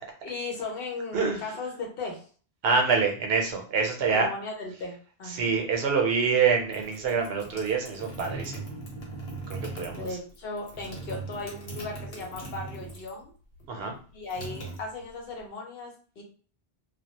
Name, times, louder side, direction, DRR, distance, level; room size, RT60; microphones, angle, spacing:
voice 1, 0.2-2.2 4.1-5.5 9.9-13.3 14.1-16.2, left 3 dB, 70° left, 1 dB, 0.9 m, -37 dB
voice 2, 2.6-4.3 5.3-8.6 9.5-10.1 13.7-13.9, right 5 dB, 75° right, 3 dB, 0.8 m, -26 dB
sound 1, 6.7-13.3 13.5-15.4, right 2 dB, 90° left, 1.2 m, -40 dB
2.2 x 2.0 x 2.8 m, 0.41 s
omnidirectional pair, 1.0 m